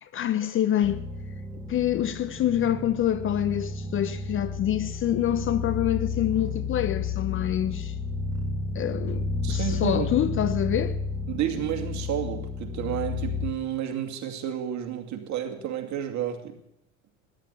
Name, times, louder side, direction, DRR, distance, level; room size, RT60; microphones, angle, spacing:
voice 1, 0.0-1.1 1.7-7.9 8.7-11.0, left 11 dB, 30° left, 0.7 m, -26 dB
sound 1, 0.8-13.5, left 4 dB, 10° right, 2.1 m, -32 dB
voice 2, 9.4-10.4 11.3-16.5, right 10 dB, 45° right, 2.6 m, -31 dB
13.5 x 10.5 x 8.4 m
hypercardioid pair, 80°, 40 cm